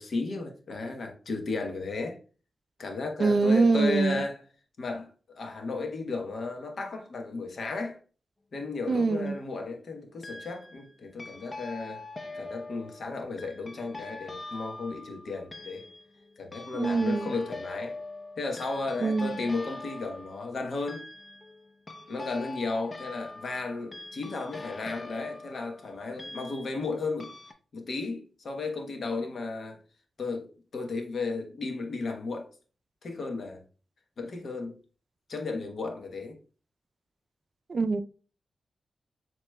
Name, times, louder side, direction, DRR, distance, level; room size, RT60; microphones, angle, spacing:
voice 1, 0.0-2.2 2.8-4.4 4.8-8.0 8.5-12.0 12.3-15.8 16.4-18.0 18.4-21.1 22.1-27.3 27.7-29.8 30.2-32.5 33.0-33.6 34.2-34.7 35.3-36.4, left 3 dB, 75° left, 1.0 m, -34 dB
voice 2, 3.2-4.2 8.9-9.4 16.7-17.3 19.0-19.4 37.7-38.0, right 3 dB, 60° right, 0.4 m, -24 dB
sound 1, 8.9-9.5 10.2-10.9 11.2-26.9 27.2-27.5, left 3 dB, 40° left, 0.6 m, -43 dB
7.2 x 2.9 x 2.2 m
cardioid pair, 55°, 0 cm